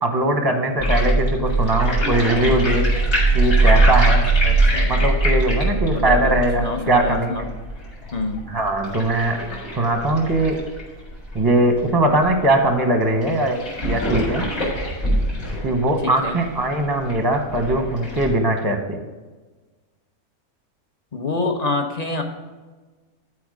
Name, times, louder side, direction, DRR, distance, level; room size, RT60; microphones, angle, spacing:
voice 1, 0.0-2.9 3.3-4.2 4.9-7.3 8.5-9.4 9.8-10.6 11.3-13.5 13.8-14.4 15.6-19.0, right 1 dB, 20° right, 5 dB, 0.8 m, -20 dB
sound 1, 0.8-11.8 12.2-12.3 12.5-12.6 13.2-18.3, right 2 dB, 65° left, 3.1 m, -21 dB
voice 2, 4.4-4.9 5.7-7.5 8.1-8.5 16.0-16.4 21.1-22.2, left 3 dB, 35° left, 4 dB, 0.8 m, -27 dB
12.0 x 4.6 x 4.9 m, 1.3 s
omnidirectional pair, 1.6 m